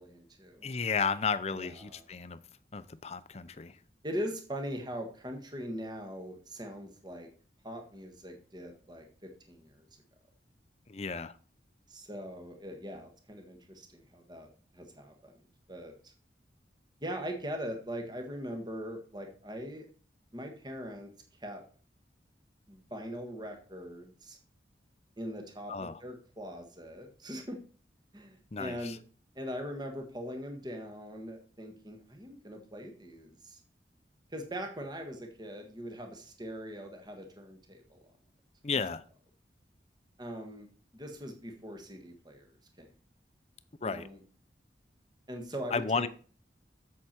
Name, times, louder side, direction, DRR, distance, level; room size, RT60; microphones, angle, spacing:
voice 1, 0.0-0.7 1.5-2.0 4.0-7.3 7.6-9.9 11.9-14.5 14.7-15.3 15.7-16.1 17.0-19.9 20.3-21.1 21.4-21.6 22.7-24.4 25.2-27.6 28.1-29.0 29.3-33.6 34.3-38.1 38.7-38.8 40.2-40.7 40.9-42.5 42.8-42.9 43.8-44.2 45.3-46.1, equal, 25° right, 1.5 m, -41 dB
voice 2, 0.6-2.4 2.7-3.8 10.9-11.3 25.7-26.0 28.5-29.0 38.6-39.0 43.8-44.1 45.7-46.1, left 5 dB, 35° left, 0.6 m, -33 dB
8.1 x 7.5 x 4.4 m
head